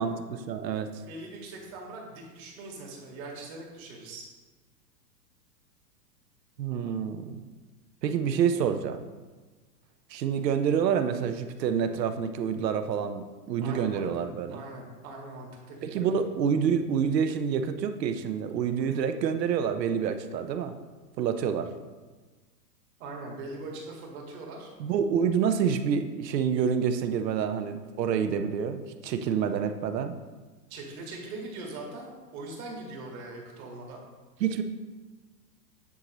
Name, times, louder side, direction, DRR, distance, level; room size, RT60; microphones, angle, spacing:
voice 1, 0.0-0.9 6.6-7.4 8.0-9.0 10.1-14.6 15.8-20.8 21.2-21.7 24.8-30.1 34.4-34.6, right 7 dB, 80° right, 9 dB, 0.7 m, -27 dB
voice 2, 1.1-4.3 13.6-14.1 14.5-16.1 18.8-19.1 23.0-24.7 30.7-34.0, right 2 dB, 55° right, -1 dB, 2.0 m, -41 dB
9.5 x 4.0 x 3.0 m, 1.3 s
hypercardioid pair, 125°, 49 cm